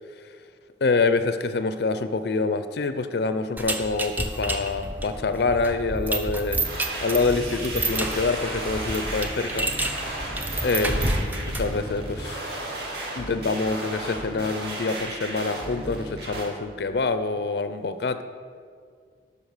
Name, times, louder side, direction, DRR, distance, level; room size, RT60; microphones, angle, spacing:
voice 1, 0.8-6.6 7.0-9.7 10.6-12.4 13.2-18.2, left 3 dB, 65° left, 10 dB, 0.5 m, -26 dB
sound 1, 3.6-11.8, right 1 dB, 10° right, 0.5 m, -30 dB
sound 2, 6.5-16.5, right 1 dB, 60° right, 1.9 m, -35 dB
Sink (filling or washing), 6.6-11.5, right 2 dB, 30° right, 2.2 m, -38 dB
12.0 x 5.3 x 6.5 m, 2.1 s
head